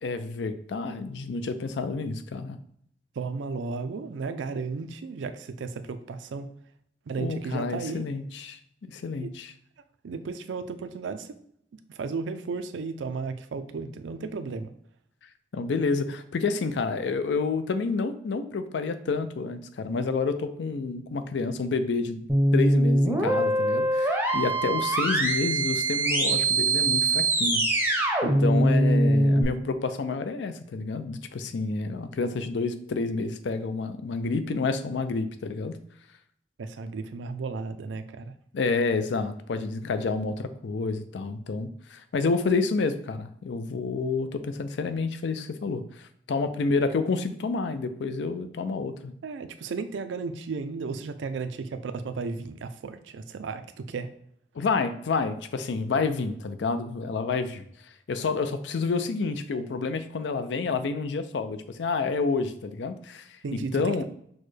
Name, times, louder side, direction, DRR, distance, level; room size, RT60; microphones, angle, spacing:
voice 1, 0.0-2.6 7.2-9.5 15.5-22.3 22.5-27.6 28.2-35.8 38.5-49.1 54.5-57.6 58.1-64.0, left 4 dB, 80° left, 10 dB, 0.4 m, -29 dB
voice 2, 3.2-6.5 7.1-8.1 9.2-9.3 10.0-11.4 11.9-14.7 36.6-38.3 49.2-54.1 63.4-64.0, right 4 dB, 90° right, 10 dB, 0.4 m, -34 dB
sound 1, 22.3-29.4, right 1 dB, 10° right, 0.6 m, -23 dB
6.2 x 2.2 x 3.2 m, 0.68 s
head